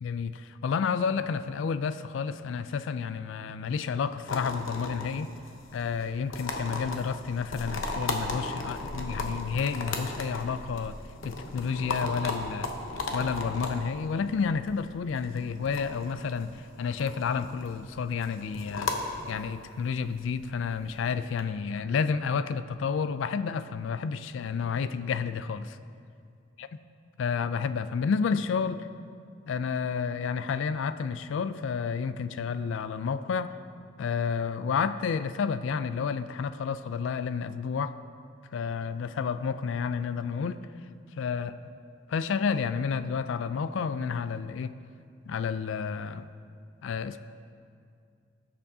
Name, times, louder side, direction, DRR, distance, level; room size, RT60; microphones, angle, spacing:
voice 1, 0.0-5.3 5.7-10.9 11.2-12.7 13.1-16.5 16.8-18.9 19.3-25.8 26.6-26.7 27.2-28.9 29.5-33.5 34.0-37.9 38.5-40.7 41.2-41.5 42.1-44.7 45.3-46.3 46.8-47.2, left 6 dB, 70° left, 12 dB, 0.3 m, -30 dB
sound 1, 4.3-21.4, left 2 dB, 90° left, 0.9 m, -36 dB
16.5 x 6.8 x 2.7 m, 2.3 s
head